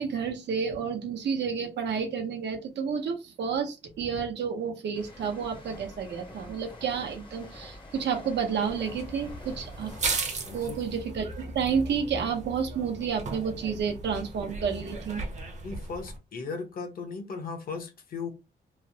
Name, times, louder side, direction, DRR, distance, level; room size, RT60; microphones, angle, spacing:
voice 1, 0.0-9.9 10.5-15.2, right 6 dB, 80° right, 0.8 m, -30 dB
sound 1, 4.9-12.4 12.7-13.0, left 2 dB, 25° left, 0.7 m, -48 dB
sound 2, 8.6-16.2, right 3 dB, 40° right, 0.7 m, -36 dB
voice 2, 10.5-10.8 15.6-18.3, left 4 dB, 55° left, 0.8 m, -37 dB
3.2 x 2.0 x 2.6 m
wide cardioid pair, 160°, 18 cm